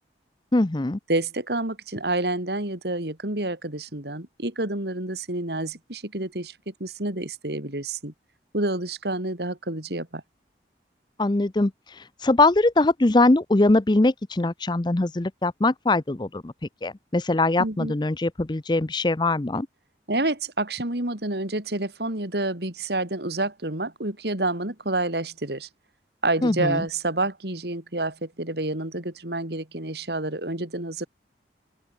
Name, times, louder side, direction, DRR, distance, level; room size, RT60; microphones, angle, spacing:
voice 1, 0.5-1.0 11.2-11.7 12.2-16.5 16.8-19.7 26.4-26.8, left 2 dB, 25° left, 0.6 m, -22 dB
voice 2, 1.1-8.1 8.5-10.2 17.6-17.9 20.1-25.7 26.2-31.1, right 2 dB, 65° right, 3.4 m, -28 dB
open air
head